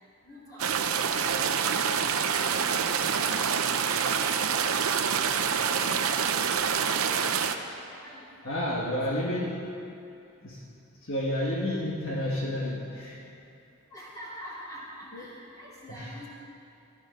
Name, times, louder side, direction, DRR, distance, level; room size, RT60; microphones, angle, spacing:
voice 1, 0.2-1.6 1.9-4.2 4.4-4.7 7.8-8.8 9.1-9.2 13.9-16.3, equal, 15° left, -7 dB, 3.5 m, -47 dB
sound 1, 0.6-7.6, right 7 dB, 80° right, 0.7 m, -26 dB
voice 2, 8.4-9.7 10.4-10.7 11.0-13.2 15.1-15.3 15.9-16.3, left 1 dB, 60° left, -3 dB, 1.6 m, -31 dB
14.0 x 12.5 x 6.4 m, 2.6 s
head